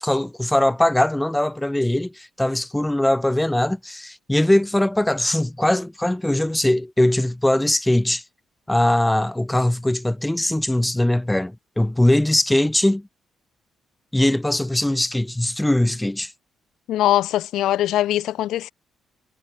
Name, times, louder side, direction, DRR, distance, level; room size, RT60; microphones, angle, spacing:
voice 1, 0.0-8.2 8.7-13.1 14.1-16.3, left 1 dB, 5° left, 5.0 m, -21 dB
voice 2, 16.9-18.7, left 13 dB, 85° left, 1.1 m, -21 dB
cardioid pair, 150°, 0 cm